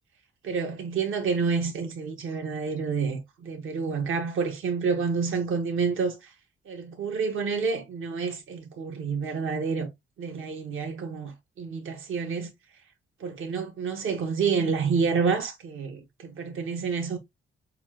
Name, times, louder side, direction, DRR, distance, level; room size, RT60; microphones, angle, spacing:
voice 1, 0.4-6.2 6.6-9.9 10.2-12.5 13.2-17.2, right 5 dB, 75° right, 1.5 m, -28 dB
7.1 x 2.4 x 3.0 m
wide cardioid pair, 160°, 21 cm